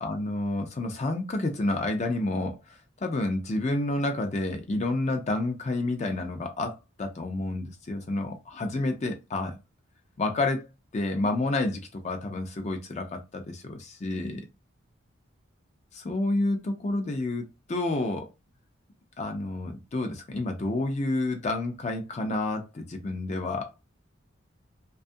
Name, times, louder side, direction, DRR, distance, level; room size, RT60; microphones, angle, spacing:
voice 1, 0.0-9.6 10.2-10.7 10.9-14.4 15.9-18.3 19.2-23.8, left 2 dB, 35° left, 0.4 m, -29 dB
2.6 x 2.3 x 2.5 m
head